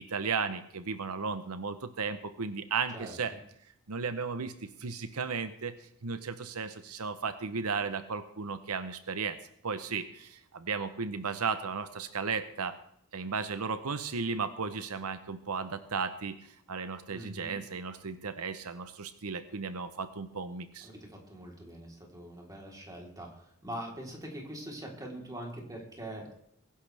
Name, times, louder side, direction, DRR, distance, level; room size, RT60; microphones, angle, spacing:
voice 1, 0.0-3.3 3.9-9.4 9.6-12.7 13.1-20.9, right 5 dB, 75° right, 10 dB, 0.8 m, -35 dB
voice 2, 17.1-17.6 20.8-26.2, right 1 dB, 15° right, -1 dB, 3.6 m, -43 dB
22.5 x 11.5 x 3.4 m, 0.71 s
head